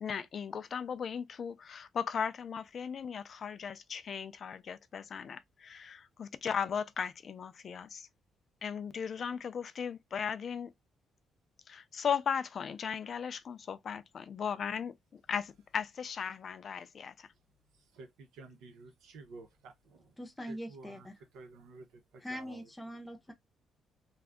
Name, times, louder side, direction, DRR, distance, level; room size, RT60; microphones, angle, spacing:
voice 1, 0.0-8.1 8.6-10.7 11.7-17.3, left 7 dB, 40° left, 0.4 m, -37 dB
voice 2, 17.5-20.2 20.5-22.7, right 3 dB, 90° right, 0.9 m, -53 dB
voice 3, 20.2-21.1 22.2-23.3, equal, 10° left, 0.7 m, -42 dB
2.6 x 2.3 x 3.5 m
cardioid pair, 150°, 0 cm